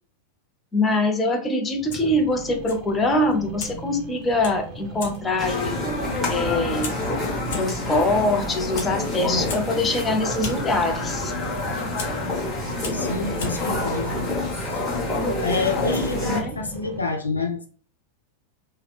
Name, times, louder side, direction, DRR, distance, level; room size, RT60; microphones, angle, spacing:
voice 1, 0.7-5.7 6.3-6.9 7.5-11.3 16.1-16.5, left 2 dB, 15° left, 3 dB, 0.5 m, -23 dB
Fire, 1.7-15.1, left 3 dB, 55° left, 0.7 m, -41 dB
sound 1, 1.8-17.0, right 1 dB, 35° right, 0.7 m, -39 dB
sound 2, 5.4-16.4, left 2 dB, 5° right, 1.0 m, -27 dB
voice 2, 12.9-14.2 14.5-14.9 15.4-17.7, left 3 dB, 80° left, 3 dB, 0.4 m, -28 dB
2.7 x 2.0 x 2.3 m, 0.42 s
figure-of-eight pair, 90°, 0 cm